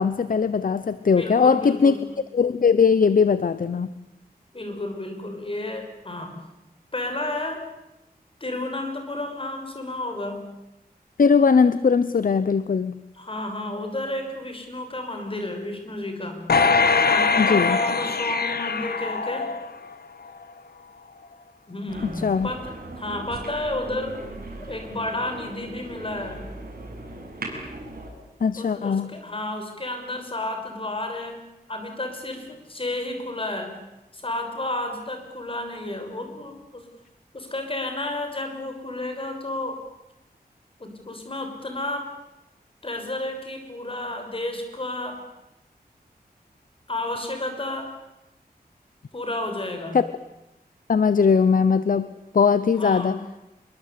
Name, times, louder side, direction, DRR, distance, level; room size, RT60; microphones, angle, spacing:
voice 1, 0.0-2.0 2.3-3.9 11.2-12.9 17.4-17.8 22.0-22.5 28.4-29.1 49.9-50.0 50.9-52.1 52.3-53.2, left 5 dB, 60° left, 14 dB, 0.9 m, -20 dB
voice 2, 1.1-2.0 4.5-6.4 6.9-7.6 8.4-10.5 13.1-16.4 17.1-19.5 21.7-24.2 24.6-26.4 28.6-31.4 31.7-33.7 34.1-36.8 37.3-39.8 40.8-42.1 42.8-45.2 46.9-47.9 49.1-50.0 52.7-53.1, left 1 dB, 35° left, 5 dB, 6.0 m, -31 dB
sound 1, 16.5-19.9 20.4-20.5, left 4 dB, 75° left, 1.5 m, -22 dB
sound 2, 21.9-28.1, right 2 dB, 65° right, 6.8 m, -38 dB
26.5 x 23.0 x 8.5 m, 0.94 s
wide cardioid pair, 100°, 16 cm